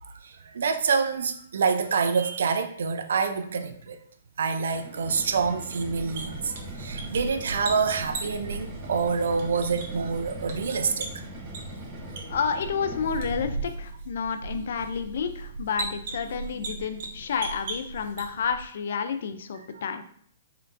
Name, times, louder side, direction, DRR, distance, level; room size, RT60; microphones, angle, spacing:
voice 1, 0.0-4.0 4.4-11.2 19.7-19.8, right 5 dB, 75° right, 0.5 m, -27 dB
sound 1, 4.6-13.7, right 1 dB, 20° right, 1.2 m, -41 dB
sound 2, 5.9-18.6, right 3 dB, 55° right, 1.1 m, -38 dB
voice 2, 12.3-20.0, left 6 dB, 65° left, 0.4 m, -30 dB
4.4 x 3.7 x 2.6 m
hypercardioid pair, 135°, 0 cm